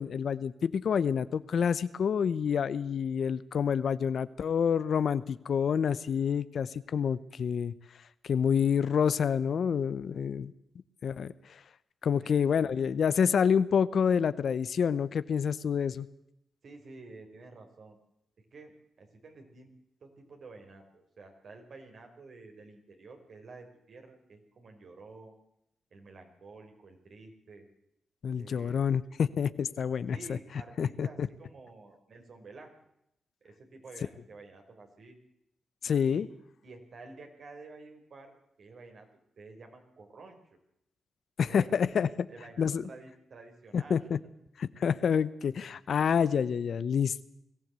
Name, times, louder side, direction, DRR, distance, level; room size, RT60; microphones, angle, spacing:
voice 1, 0.0-7.7 8.2-10.5 11.0-11.3 12.0-16.1 28.2-30.2 30.8-31.3 35.8-36.3 41.4-42.1 42.6-42.8 43.7-44.2 44.6-47.2, left 7 dB, 70° left, 16 dB, 0.8 m, -28 dB
voice 2, 12.2-12.9 16.6-18.0 18.5-18.7 19.0-19.7 20.0-25.4 25.9-27.7 28.4-28.9 30.1-32.7 33.4-35.2 35.8-36.3 36.6-38.3 38.6-39.1 39.4-40.6 41.4-41.8 42.3-44.0, right 3 dB, 65° right, 4 dB, 4.6 m, -50 dB
21.0 x 15.0 x 8.2 m, 0.80 s
cardioid pair, 65°, 0 cm